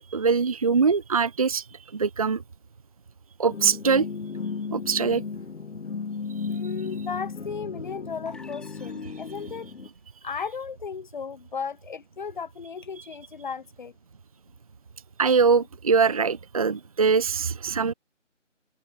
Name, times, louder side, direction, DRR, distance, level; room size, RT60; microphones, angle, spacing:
voice 1, 0.0-1.6 1.9-2.4 3.4-4.1 4.7-5.2 15.2-17.9, right 5 dB, 30° right, 1.0 m, -22 dB
sound 1, 3.5-9.9, left 5 dB, 65° left, 1.2 m, -35 dB
voice 2, 6.5-9.7 10.2-13.9, left 6 dB, 40° left, 3.2 m, -35 dB
sound 2, 8.3-9.9, left 3 dB, ahead, 4.2 m, -51 dB
open air
figure-of-eight pair, 160°, 38 cm